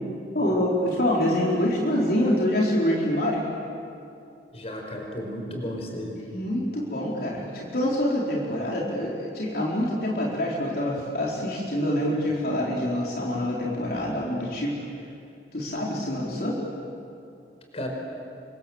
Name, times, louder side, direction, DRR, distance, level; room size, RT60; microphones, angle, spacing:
voice 1, 0.3-3.5 6.3-14.8 15.5-16.6, left 1 dB, 60° left, -4 dB, 4.3 m, -26 dB
voice 2, 4.5-6.2 17.7-17.9, equal, 35° left, 1 dB, 5.4 m, -33 dB
28.5 x 25.5 x 8.0 m, 2.5 s
head